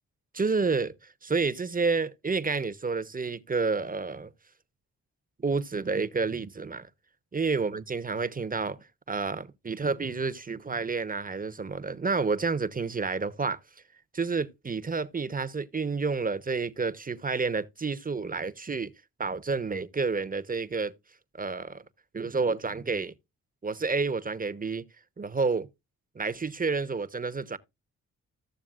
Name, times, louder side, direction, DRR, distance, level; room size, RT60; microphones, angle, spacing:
voice 1, 0.3-4.3 5.4-6.9 7.3-13.6 14.1-18.9 19.2-20.9 21.3-21.8 22.1-23.1 23.6-24.8 25.2-25.6 26.1-27.6, right 4 dB, 25° right, 0.9 m, -29 dB
14.0 x 7.0 x 2.4 m
supercardioid pair, 55°, 34 cm